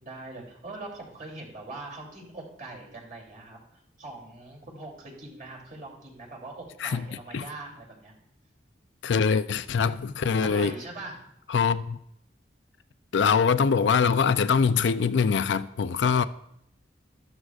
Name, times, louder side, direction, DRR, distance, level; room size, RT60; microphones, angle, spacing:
voice 1, 0.0-8.1 10.4-11.2, right 2 dB, 45° right, 3.0 m, -42 dB
voice 2, 9.0-10.7 11.5-12.0 13.1-16.2, left 6 dB, 75° left, 0.4 m, -23 dB
13.0 x 12.5 x 2.4 m
head